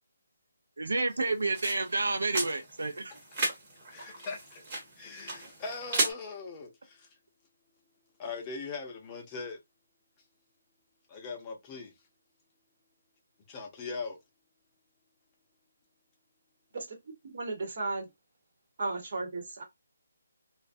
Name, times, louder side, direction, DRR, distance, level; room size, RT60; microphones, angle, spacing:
voice 1, 0.8-3.1, right 3 dB, 85° right, 0.6 m, -30 dB
sound 1, 1.1-6.1, right 2 dB, 35° right, 1.1 m, -35 dB
voice 2, 3.9-4.6 5.0-7.1 8.2-9.6 11.1-11.9 13.5-14.2, left 4 dB, 20° left, 0.6 m, -40 dB
voice 3, 17.2-18.1 18.8-19.6, right 3 dB, 50° right, 1.0 m, -34 dB
2.4 x 2.1 x 2.5 m
hypercardioid pair, 160°, 0 cm